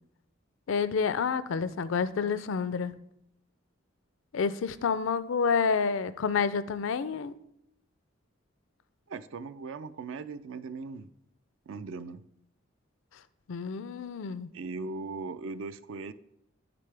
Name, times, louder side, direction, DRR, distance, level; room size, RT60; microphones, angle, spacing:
voice 1, 0.7-3.0 4.3-7.3 13.5-14.5, left 5 dB, 70° left, 15 dB, 0.4 m, -29 dB
voice 2, 9.1-11.1 11.7-12.2 14.5-16.1, right 4 dB, 65° right, 14 dB, 0.4 m, -39 dB
9.1 x 6.8 x 3.3 m, 0.77 s
head